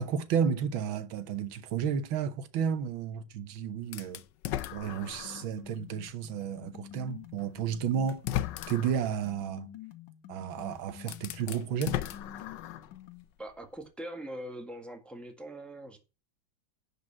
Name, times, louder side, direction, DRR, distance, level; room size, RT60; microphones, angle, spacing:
voice 1, 0.0-4.2 4.7-8.2 8.7-9.7 10.3-12.0, right 7 dB, 85° right, 1.7 m, -32 dB
sound 1, 3.9-5.5 6.1-6.2 7.4-7.5 8.1-9.1 10.5-10.6 11.0-13.0, left 12 dB, 70° left, 1.3 m, -36 dB
sound 2, 5.2-13.2, left 10 dB, 85° left, 1.7 m, -49 dB
voice 2, 13.4-16.0, right 1 dB, ahead, 1.4 m, -42 dB
10.5 x 5.1 x 7.3 m
omnidirectional pair, 2.1 m